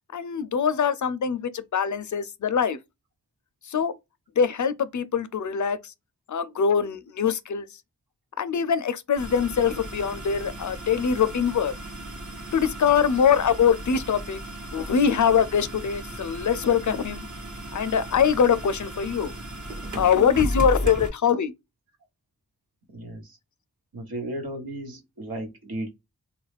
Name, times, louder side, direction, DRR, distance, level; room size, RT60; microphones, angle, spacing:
voice 1, 0.1-2.8 3.6-3.9 4.4-5.9 6.3-7.7 8.4-11.7 12.5-14.4 14.7-17.3 17.7-19.3 19.9-21.5, left 7 dB, 55° left, 0.4 m, -23 dB
sound 1, 9.2-21.1, right 1 dB, 55° right, 1.1 m, -35 dB
voice 2, 22.9-23.4 23.9-25.9, right 1 dB, 75° right, 1.2 m, -35 dB
3.0 x 2.4 x 3.3 m
wide cardioid pair, 70°, 37 cm